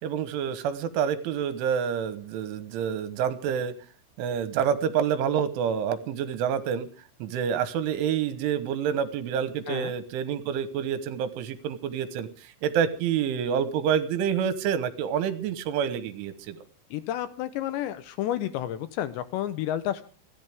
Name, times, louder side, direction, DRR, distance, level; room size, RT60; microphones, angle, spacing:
voice 1, 0.0-3.7 4.2-6.9 7.2-12.3 12.6-16.6, right 8 dB, 80° right, 12 dB, 3.6 m, -28 dB
voice 2, 16.9-20.0, left 12 dB, 75° left, 12 dB, 2.8 m, -31 dB
28.0 x 11.0 x 3.6 m, 0.35 s
omnidirectional pair, 5.7 m